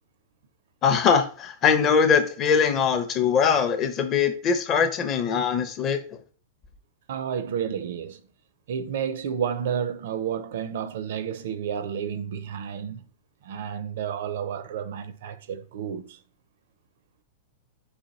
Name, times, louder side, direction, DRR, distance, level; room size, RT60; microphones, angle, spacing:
voice 1, 0.8-6.2, left 6 dB, 20° left, 0.5 m, -22 dB
voice 2, 7.1-8.2 8.7-13.0 13.4-16.2, right 8 dB, 55° right, 0.4 m, -31 dB
4.1 x 3.0 x 4.0 m
supercardioid pair, 175°, 0 cm